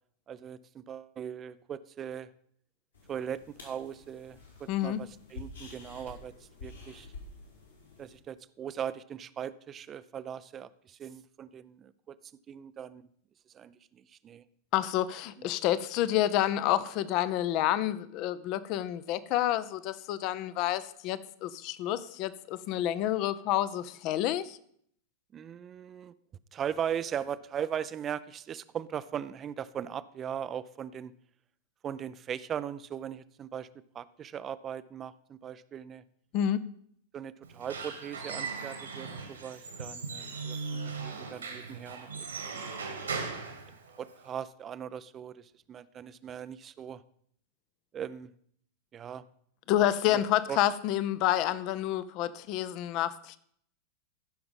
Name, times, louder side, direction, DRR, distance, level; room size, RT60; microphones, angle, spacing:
voice 1, 0.3-2.3 3.1-7.1 8.0-12.2 12.5-13.1 13.5-14.4 15.4-15.5 25.3-26.1 26.5-31.2 31.8-36.0 37.1-42.3 42.5-42.7 44.0-47.0 47.9-48.3 48.9-49.3 50.1-50.2 50.5-50.6, right 9 dB, 25° right, 16 dB, 0.5 m, -39 dB
sound 1, 2.9-8.2, left 4 dB, 75° left, 4.0 m, -49 dB
voice 2, 4.7-5.0 14.7-24.6 36.3-36.6 49.7-53.4, left 12 dB, 40° left, 16 dB, 0.6 m, -29 dB
Squeak / Wood, 37.4-44.3, right 4 dB, 75° right, 1.9 m, -39 dB
15.0 x 5.8 x 5.4 m, 0.65 s
figure-of-eight pair, 90°, 0 cm